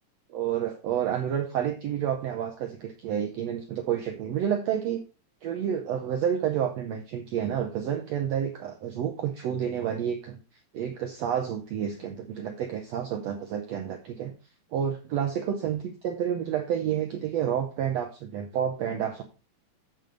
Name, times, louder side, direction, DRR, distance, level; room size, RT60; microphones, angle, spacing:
voice 1, 0.3-5.0 5.4-10.4 10.7-14.3 14.7-19.2, right 9 dB, 90° right, 4 dB, 1.4 m, -29 dB
7.6 x 7.1 x 3.8 m, 0.32 s
omnidirectional pair, 4.1 m